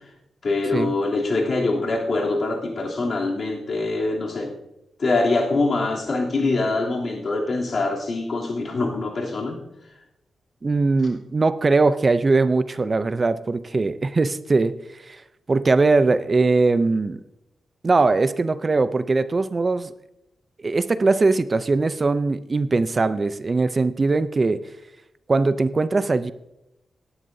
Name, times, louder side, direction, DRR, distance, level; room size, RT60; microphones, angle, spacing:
voice 1, 0.4-4.5 5.0-9.5, left 3 dB, 55° left, -2 dB, 3.0 m, -24 dB
voice 2, 10.6-15.2 15.5-17.2 17.8-19.9 20.6-24.7 25.3-26.3, right 3 dB, 35° right, 14 dB, 0.5 m, -21 dB
17.5 x 11.0 x 2.7 m, 0.88 s
cardioid pair, 85°, 0 cm